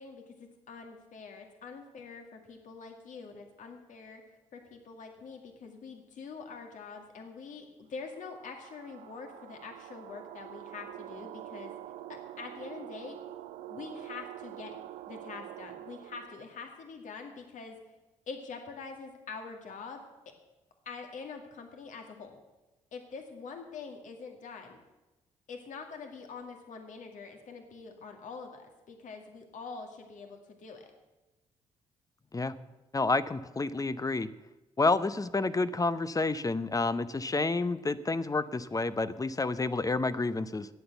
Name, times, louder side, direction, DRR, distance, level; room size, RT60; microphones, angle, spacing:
voice 1, 0.0-4.2 4.5-11.7 12.4-13.2 13.7-14.7 15.1-17.8 18.3-20.0 20.9-22.4 22.9-24.8 25.5-30.9, left 4 dB, 65° left, 4 dB, 2.2 m, -45 dB
sound 1, 8.1-16.4, right 13 dB, 80° right, 0.5 m, -46 dB
voice 2, 32.9-34.3 34.8-40.7, left 3 dB, 25° left, 14 dB, 0.8 m, -29 dB
11.0 x 8.7 x 8.1 m, 1.1 s
supercardioid pair, 50°, 14 cm